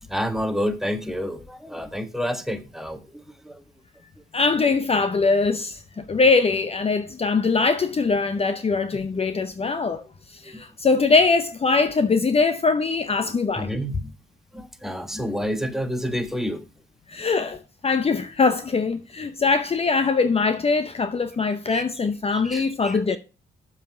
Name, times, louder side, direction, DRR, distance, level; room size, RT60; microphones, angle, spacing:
voice 1, 0.1-3.6 8.9-9.0 10.4-10.6 13.6-14.1 14.5-16.6 21.7-21.8 22.3-23.2, equal, ahead, 1.3 m, -29 dB
voice 2, 4.3-10.0 10.3-13.7 17.1-23.2, left 4 dB, 30° left, 0.8 m, -22 dB
7.4 x 5.7 x 7.0 m
cardioid pair, 90°, 20 cm